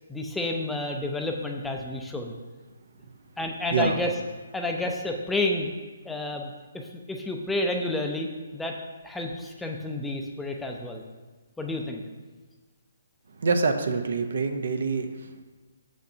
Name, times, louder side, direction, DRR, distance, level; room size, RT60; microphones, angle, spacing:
voice 1, 0.1-2.3 3.4-4.1 4.5-5.7 6.0-8.8 9.0-11.0 11.6-12.0, left 2 dB, 5° left, 2 dB, 0.5 m, -30 dB
voice 2, 13.4-15.4, right 4 dB, 70° right, 7 dB, 0.7 m, -26 dB
6.9 x 6.4 x 2.8 m, 1.3 s
hypercardioid pair, 145°, 0 cm